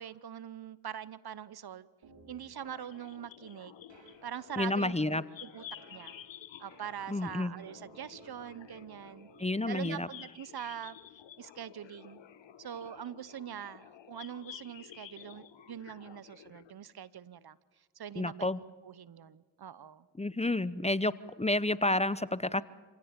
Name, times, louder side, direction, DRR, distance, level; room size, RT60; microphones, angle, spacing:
voice 1, 0.0-1.9 2.3-3.7 4.2-5.6 5.9-6.1 6.6-9.3 9.7-11.0 11.4-12.2 12.6-17.6 18.0-20.1, right 9 dB, 55° right, 1.0 m, -43 dB
sound 1, 2.0-2.4 3.9-4.1 5.8-6.1 6.7-9.5, right 3 dB, 75° right, 5.9 m, -57 dB
sound 2, 2.5-16.7, left 10 dB, 70° left, 1.4 m, -52 dB
voice 2, 4.6-5.2 7.1-7.5 9.4-10.1 18.2-18.6 20.2-22.6, left 2 dB, 15° left, 0.9 m, -30 dB
27.5 x 17.5 x 9.0 m
supercardioid pair, 45°, 46 cm